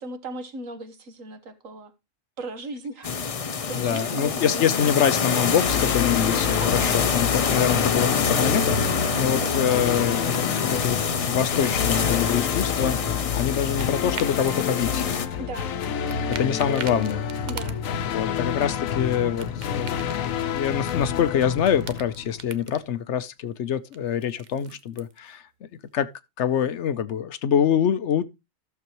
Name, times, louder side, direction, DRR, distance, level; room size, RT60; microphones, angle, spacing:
voice 1, 0.0-1.9 2.4-3.1 3.7-4.7 6.6-7.0 7.6-7.8 9.3-9.6 15.4-15.7 17.5-17.8, right 2 dB, 75° right, 1.5 m, -37 dB
sound 1, 3.0-15.3, left 6 dB, 45° left, 0.4 m, -26 dB
voice 2, 3.7-15.3 16.1-17.3 18.0-20.2 20.5-25.5 25.9-26.1 26.4-28.2, left 9 dB, 65° left, 0.9 m, -25 dB
sound 2, 5.6-22.7, left 7 dB, 80° left, 1.2 m, -29 dB
sound 3, 13.0-14.6 14.9-15.8 16.1-18.1 18.5-21.3 21.5-22.8 23.9-25.2, right 7 dB, 45° right, 0.6 m, -41 dB
14.0 x 6.8 x 2.9 m
omnidirectional pair, 1.4 m